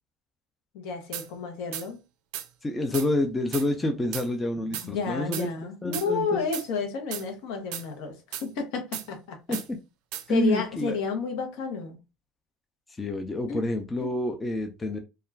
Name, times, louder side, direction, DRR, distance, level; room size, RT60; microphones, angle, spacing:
voice 1, 0.7-2.0 4.6-9.6 10.3-12.0 13.5-13.6, left 5 dB, 70° left, 0.7 m, -31 dB
sound 1, 1.1-1.3 1.7-1.9 2.3-2.5 2.9-3.1 3.5-3.7 4.1-4.3 4.7-4.9 5.3-5.5 5.9-6.1 6.5-6.7 7.1-7.3 7.7-7.9 8.3-8.5 8.9-9.1 9.5-9.7 10.1-10.3, right 11 dB, 70° right, 0.4 m, -35 dB
voice 2, 2.6-5.5 5.8-6.4 9.5-9.8 10.3-11.0 13.0-15.0, left 1 dB, 20° left, 0.5 m, -28 dB
2.3 x 2.2 x 3.2 m
hypercardioid pair, 80°, 0 cm